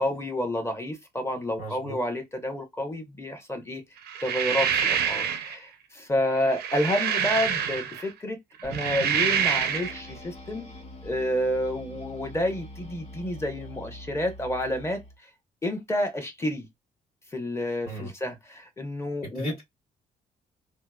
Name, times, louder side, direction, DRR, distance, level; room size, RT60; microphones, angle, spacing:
voice 1, 0.0-3.8 4.2-10.7 11.0-15.0 15.6-16.7 17.3-19.5, left 1 dB, 15° left, 0.9 m, -29 dB
voice 2, 1.6-2.0 17.8-18.1 19.3-19.6, equal, 65° left, 1.6 m, -33 dB
sound 1, 4.1-5.6 6.4-8.1 8.6-10.0, right 8 dB, 85° right, 0.5 m, -26 dB
sound 2, 8.6-15.2, left 1 dB, 40° left, 1.0 m, -44 dB
2.8 x 2.1 x 2.2 m
cardioid pair, 90°, 16 cm